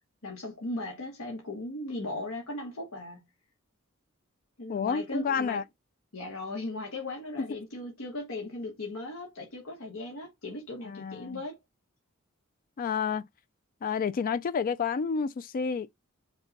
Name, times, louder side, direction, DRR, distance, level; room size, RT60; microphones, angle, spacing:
voice 1, 0.2-3.2 4.6-5.6 6.1-11.6, left 2 dB, 80° left, 1.1 m, -38 dB
voice 2, 4.7-5.6 10.8-11.4 12.8-13.3 13.8-15.9, left 6 dB, 40° left, 0.3 m, -30 dB
5.3 x 2.2 x 3.9 m
head